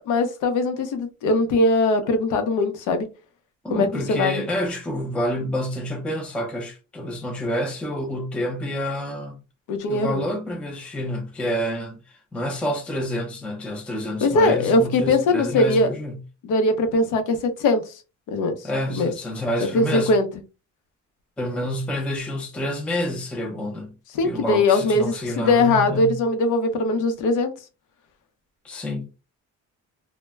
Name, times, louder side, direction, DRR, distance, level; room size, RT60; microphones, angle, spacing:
voice 1, 0.1-3.1 3.7-4.4 9.7-10.3 14.2-15.9 16.4-17.8 18.3-18.6 18.9-19.1 19.7-20.3 24.1-27.5, left 2 dB, 85° left, 0.7 m, -21 dB
voice 2, 3.6-9.4 9.9-16.2 18.6-20.1 21.4-23.9 24.2-26.2 28.6-29.1, equal, 5° left, 0.3 m, -28 dB
2.1 x 2.1 x 3.3 m
cardioid pair, 180°, 30 cm